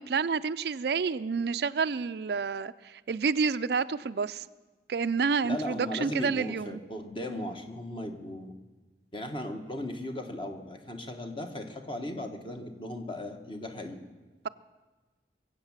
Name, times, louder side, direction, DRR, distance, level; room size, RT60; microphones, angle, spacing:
voice 1, 0.0-4.4 4.9-6.8, right 5 dB, 65° right, 13 dB, 0.4 m, -29 dB
voice 2, 5.4-8.5 9.1-14.0, left 1 dB, 30° left, 4 dB, 1.4 m, -37 dB
23.0 x 8.3 x 7.3 m, 1.3 s
head